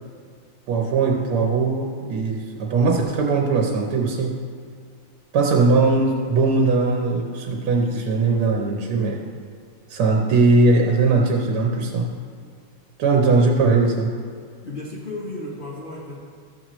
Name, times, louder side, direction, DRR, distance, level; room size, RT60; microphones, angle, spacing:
voice 1, 0.7-4.4 5.3-9.3 9.9-12.1 13.0-14.1, right 3 dB, 85° right, 1 dB, 1.6 m, -20 dB
voice 2, 14.6-16.2, left 2 dB, 85° left, -5 dB, 0.4 m, -33 dB
13.0 x 7.6 x 3.0 m, 2.1 s
omnidirectional pair, 2.4 m